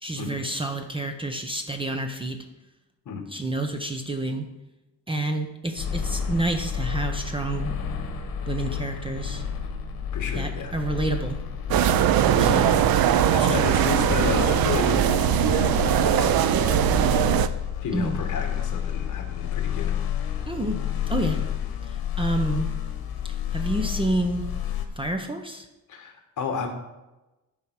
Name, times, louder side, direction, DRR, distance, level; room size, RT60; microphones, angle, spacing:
voice 1, 0.0-2.5 3.3-4.5 5.1-7.8 8.5-9.4 10.3-11.4 12.4-12.7 13.4-13.6 17.9-18.2 20.5-21.4 21.8-22.7 23.5-24.5 25.0-25.7, right 2 dB, 15° right, 5 dB, 0.6 m, -29 dB
sound 1, 5.8-24.9, left 8 dB, 75° left, 1.3 m, -30 dB
voice 2, 10.1-10.7 12.3-12.6 13.3-17.3 17.8-19.9 20.3-20.5 21.2-21.4 25.9-26.7, left 5 dB, 55° left, 4 dB, 1.6 m, -32 dB
sound 2, 11.7-17.5, right 11 dB, 75° right, 0.6 m, -21 dB
12.0 x 4.6 x 5.9 m, 1.0 s
wide cardioid pair, 170°, 36 cm